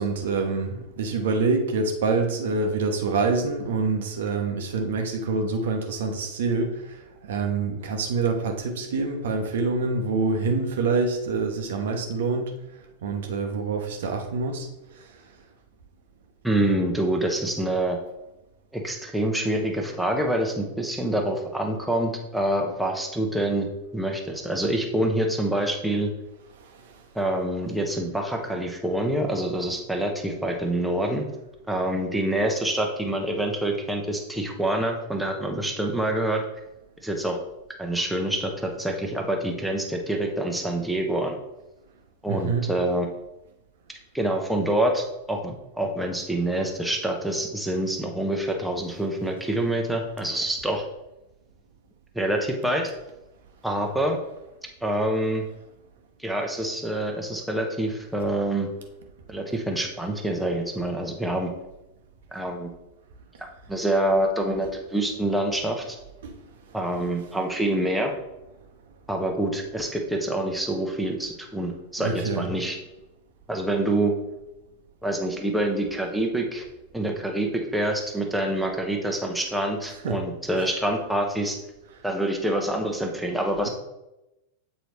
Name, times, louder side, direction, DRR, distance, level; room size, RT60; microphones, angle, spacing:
voice 1, 0.0-12.5 13.0-14.7 14.9-15.1 26.6-26.9 42.3-42.7 66.2-66.3 72.0-72.5 80.0-80.2, right 4 dB, 60° right, 4 dB, 0.8 m, -26 dB
voice 2, 16.4-18.0 18.7-23.7 23.9-26.1 27.1-31.2 31.7-36.4 37.0-37.4 37.8-41.4 42.2-43.1 44.1-50.8 52.1-52.9 53.6-54.2 54.8-55.4 56.2-58.7 59.3-61.5 62.3-62.7 63.4-66.0 66.7-68.1 69.1-72.8 73.5-74.1 75.0-76.6 76.9-81.6 82.0-83.7, right 1 dB, ahead, 1 dB, 0.8 m, -26 dB
7.7 x 4.0 x 3.1 m, 0.94 s
figure-of-eight pair, 90°, 0 cm